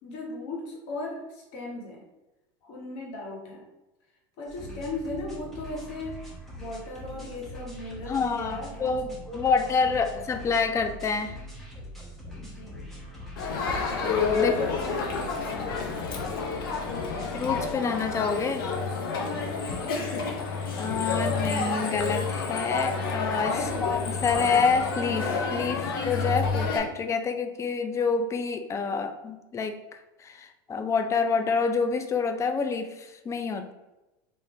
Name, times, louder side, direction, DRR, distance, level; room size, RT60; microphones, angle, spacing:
voice 1, 0.0-2.0 2.6-3.7 4.4-6.2 6.6-9.0 9.3-10.5 12.4-12.9 14.3-16.3 19.8-20.2 23.6-24.0, left 2 dB, 65° left, -2 dB, 1.4 m, -38 dB
sound 1, 4.5-17.7, equal, ahead, 1.1 m, -42 dB
voice 2, 8.1-11.4 14.0-14.5 17.3-18.7 20.8-29.8 30.2-33.7, left 5 dB, 25° left, 7 dB, 0.4 m, -27 dB
Crowd, 13.4-26.8, left 4 dB, 85° left, 0.7 m, -29 dB
3.6 x 2.6 x 3.2 m, 1.0 s
supercardioid pair, 105°, 11 cm